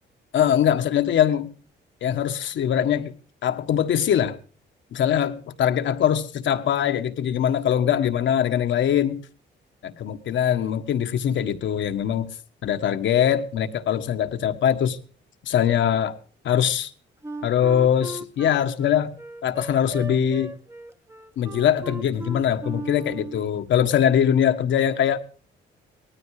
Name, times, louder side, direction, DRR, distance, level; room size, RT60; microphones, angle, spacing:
voice 1, 0.3-1.5 2.0-3.1 3.4-4.4 4.9-9.2 9.8-12.3 12.6-15.0 15.4-16.2 16.4-16.9 17.4-19.1 19.4-20.5 21.4-25.2, left 9 dB, 70° left, 7 dB, 1.5 m, -22 dB
Wind instrument woodwind instrument, 17.2-23.5, right 2 dB, 15° right, 1.1 m, -37 dB
19.0 x 13.5 x 4.9 m, 0.41 s
cardioid pair, 90°, 20 cm